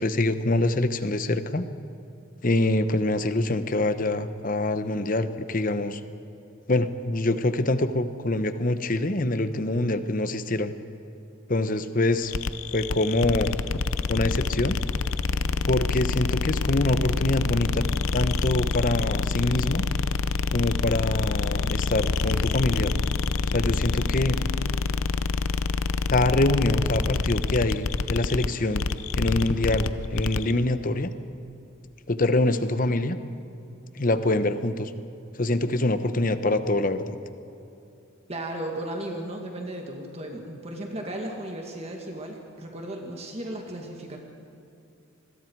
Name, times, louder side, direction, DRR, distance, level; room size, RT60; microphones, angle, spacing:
voice 1, 0.0-1.7 2.4-6.0 6.7-10.7 11.5-12.3 12.7-13.6 14.1-14.8 15.7-17.8 18.1-19.9 20.5-22.9 23.5-24.4 26.1-28.8 29.2-31.1 32.1-33.2 34.0-34.9 35.4-37.2, left 2 dB, 40° left, 10 dB, 0.9 m, -25 dB
sound 1, 12.3-30.5, left 4 dB, 80° left, 0.7 m, -27 dB
voice 2, 38.3-44.2, right 1 dB, 30° right, 1 dB, 2.1 m, -35 dB
26.5 x 21.0 x 4.7 m, 2.8 s
head